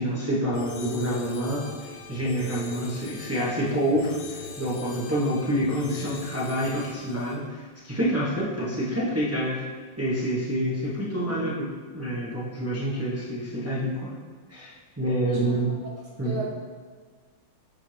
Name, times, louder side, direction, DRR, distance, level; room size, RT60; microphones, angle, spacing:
voice 1, 0.0-9.6 10.0-11.7 11.9-14.1 14.5-15.7 16.2-16.4, equal, 25° right, -8 dB, 0.3 m, -27 dB
sound 1, 0.5-7.4, left 5 dB, 75° left, 1.6 m, -40 dB
voice 2, 15.2-15.6 15.9-16.4, equal, 80° right, -3 dB, 2.1 m, -36 dB
10.0 x 3.5 x 3.2 m, 1.5 s
omnidirectional pair, 2.3 m